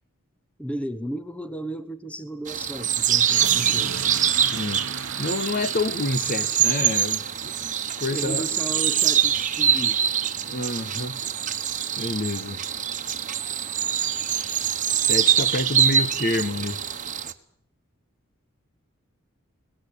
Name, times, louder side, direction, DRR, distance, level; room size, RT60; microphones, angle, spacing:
voice 1, 0.6-4.0 8.1-10.0, right 1 dB, 5° left, 1.1 m, -34 dB
sound 1, 2.5-17.3, right 9 dB, 40° right, 1.4 m, -24 dB
sound 2, 3.0-8.0, right 6 dB, 65° right, 1.1 m, -37 dB
voice 2, 4.5-7.7 8.0-8.5 10.4-11.2 12.0-12.6 14.9-16.8, left 2 dB, 45° left, 1.5 m, -28 dB
22.5 x 19.5 x 8.6 m
head